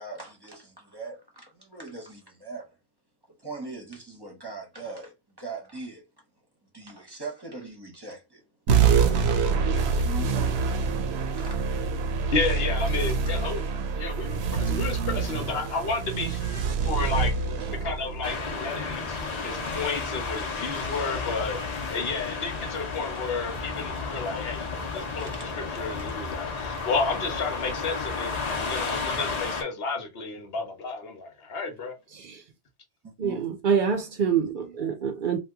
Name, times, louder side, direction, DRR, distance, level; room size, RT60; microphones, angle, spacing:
voice 1, 0.0-2.8 3.4-6.1 6.7-8.4 8.9-9.0 9.7-10.8 11.1-11.6 12.9-13.2 16.6-16.9 17.6-17.7 25.2-25.4 28.8-28.9 33.0-33.4, right 4 dB, 25° right, 0.9 m, -41 dB
sound 1, 8.7-19.5, right 5 dB, 90° right, 0.9 m, -26 dB
voice 2, 12.3-13.6 13.9-17.3 17.8-25.3 25.5-31.9, left 4 dB, 75° left, 1.1 m, -32 dB
sound 2, 18.2-29.6, left 4 dB, 45° left, 0.8 m, -32 dB
voice 3, 32.1-32.4 33.2-35.4, right 7 dB, 60° right, 0.6 m, -26 dB
2.8 x 2.3 x 3.4 m
omnidirectional pair, 1.1 m